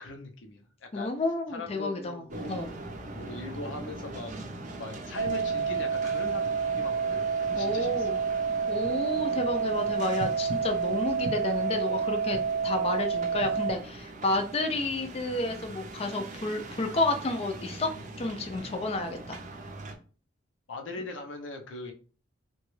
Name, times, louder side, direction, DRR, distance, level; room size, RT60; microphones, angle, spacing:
voice 1, 0.0-1.1 1.5-2.5 3.1-4.5 4.8-7.2 7.5-8.1 20.7-21.9, left 3 dB, 90° left, 3 dB, 0.6 m, -40 dB
voice 2, 0.9-2.7 7.5-8.2 8.7-12.4 12.6-19.4, left 2 dB, 30° left, 4 dB, 0.4 m, -31 dB
sound 1, 2.3-19.9, right 2 dB, 40° right, 0.5 m, -42 dB
sound 2, 5.2-13.7, right 6 dB, 90° right, 0.8 m, -29 dB
2.9 x 2.3 x 3.1 m, 0.37 s
head